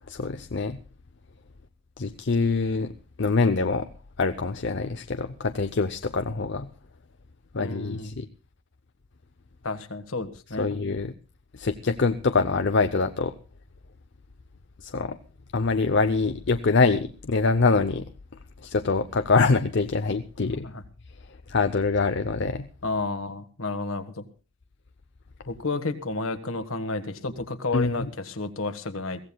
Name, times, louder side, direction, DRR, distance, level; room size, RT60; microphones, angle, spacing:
voice 1, 0.1-0.8 2.0-2.9 3.2-3.9 4.2-6.7 7.5-8.3 10.6-11.1 11.5-13.3 14.8-15.2 15.5-18.0 18.6-20.7 21.5-22.7 27.7-28.1, left 4 dB, 55° left, 8 dB, 0.6 m, -24 dB
voice 2, 7.6-8.1 9.6-10.7 20.7-20.8 22.8-24.2 25.5-29.3, left 3 dB, 70° left, 9 dB, 1.5 m, -31 dB
22.5 x 16.0 x 2.3 m, 0.36 s
head